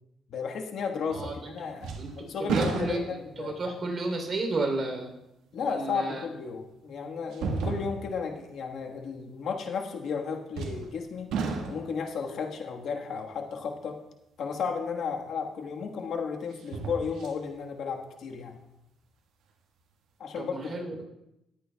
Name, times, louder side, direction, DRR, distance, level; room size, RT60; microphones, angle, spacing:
voice 1, 0.3-3.6 5.5-11.3 11.7-14.0 14.4-18.6 20.2-21.0, left 5 dB, 70° left, 2 dB, 1.4 m, -34 dB
voice 2, 1.1-5.1 5.6-6.2 20.3-21.0, right 2 dB, 40° right, 2 dB, 3.2 m, -33 dB
sound 1, 1.1-1.5 1.8-3.4 4.0-4.1 6.0-6.1 7.3-8.2 10.5-11.0 11.3-12.0 15.0-15.1 16.5-17.4 17.9-18.0, right 4 dB, 90° right, 1.4 m, -33 dB
20.0 x 8.8 x 2.3 m, 0.87 s
cardioid pair, 90°, 0 cm